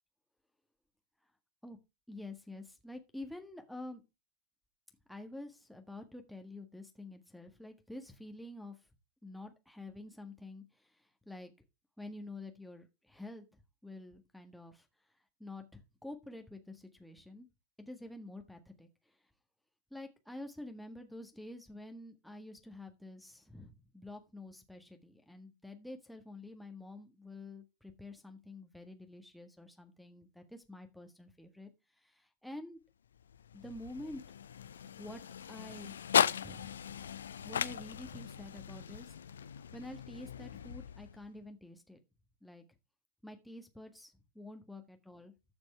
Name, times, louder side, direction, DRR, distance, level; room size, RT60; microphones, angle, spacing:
voice 1, 2.1-4.0 5.1-8.9 9.2-11.5 12.0-17.5 17.8-19.3 19.9-32.8 33.5-34.2 34.7-35.2 35.5-36.7 37.4-42.0 42.4-42.6 43.2-45.3, left 2 dB, ahead, 4 dB, 1.6 m, -48 dB
sound 1, 33.1-41.4, left 8 dB, 65° left, 0.4 m, -37 dB
14.0 x 5.3 x 4.5 m, 0.26 s
figure-of-eight pair, 90°, 0 cm